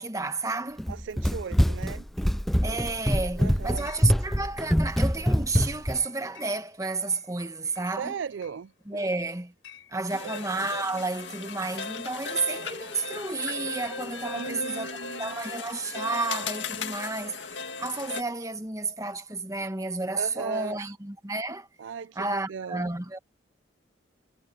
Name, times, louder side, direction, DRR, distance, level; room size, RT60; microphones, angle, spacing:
voice 1, 0.0-0.8 2.6-8.2 8.9-9.5 9.9-14.9 15.2-21.7 22.1-23.2, right 3 dB, 15° right, 1.4 m, -31 dB
Run, 0.8-6.0, equal, ahead, 0.3 m, -24 dB
voice 2, 0.9-2.0 3.4-3.9 8.0-9.1 14.3-15.3 20.1-20.8 21.8-22.9, right 6 dB, 75° right, 0.4 m, -37 dB
Chatter / Chink clink, 3.6-15.3, left 10 dB, 85° left, 6.9 m, -55 dB
sound 1, 10.1-18.2, left 4 dB, 70° left, 2.0 m, -36 dB
head